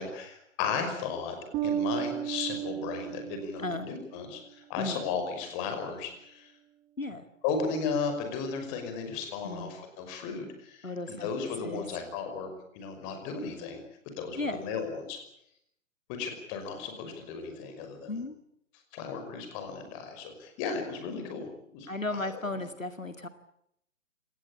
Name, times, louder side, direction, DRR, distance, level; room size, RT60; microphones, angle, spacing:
voice 1, 0.0-1.4 1.6-6.5 7.4-13.8 14.2-15.2 16.2-18.1 18.9-21.5 21.7-21.9 22.1-22.3, left 5 dB, 25° left, 6 dB, 5.6 m, -35 dB
Bass guitar, 1.5-4.2, right 10 dB, 15° right, 1.1 m, -34 dB
voice 2, 9.4-9.8 10.8-11.3 11.6-11.9 14.4-14.6 18.1-18.4 21.9-23.3, left 2 dB, 90° left, 10 dB, 2.2 m, -35 dB
27.0 x 19.0 x 8.8 m, 0.75 s
figure-of-eight pair, 130°, 39 cm